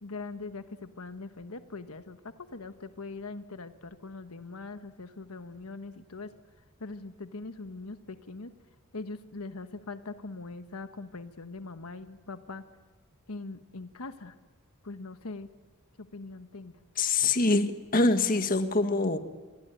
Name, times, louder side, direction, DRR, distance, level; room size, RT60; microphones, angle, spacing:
voice 1, 0.0-6.3 6.8-8.5 8.9-12.6 13.3-14.3 14.8-15.5 16.0-16.7, left 3 dB, 85° left, 9 dB, 1.3 m, -41 dB
voice 2, 17.0-19.2, left 3 dB, 40° left, 8 dB, 1.6 m, -25 dB
27.5 x 22.5 x 9.3 m, 1.4 s
head